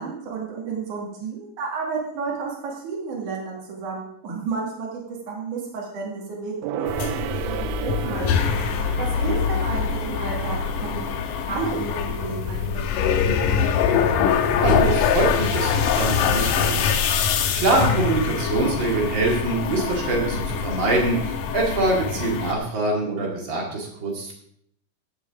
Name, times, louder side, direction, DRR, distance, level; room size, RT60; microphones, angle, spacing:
voice 1, 0.0-8.5 9.0-11.0 11.5-13.2, right 5 dB, 65° right, -4 dB, 3.8 m, -31 dB
Gong, 6.6-12.5 12.8-12.9, right 11 dB, 90° right, 1.6 m, -34 dB
sound 1, 6.9-22.5, left 7 dB, 80° left, 2.4 m, -24 dB
voice 2, 14.6-17.0 17.5-24.3, right 2 dB, 40° right, -1 dB, 2.7 m, -24 dB
16.0 x 7.2 x 3.7 m, 0.69 s
omnidirectional pair, 3.8 m